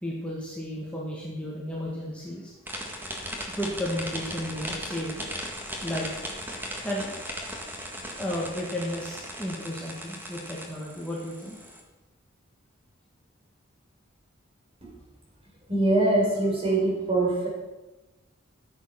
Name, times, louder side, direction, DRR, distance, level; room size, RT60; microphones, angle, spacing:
voice 1, 0.0-2.5 3.5-6.5 6.8-7.1 8.2-11.6, equal, 5° left, -4 dB, 1.8 m, -33 dB
sound 1, 2.7-11.8, equal, 10° right, 1.7 m, -37 dB
voice 2, 15.7-17.5, right 2 dB, 30° right, -3 dB, 4.1 m, -23 dB
14.0 x 7.7 x 5.8 m, 1.1 s
head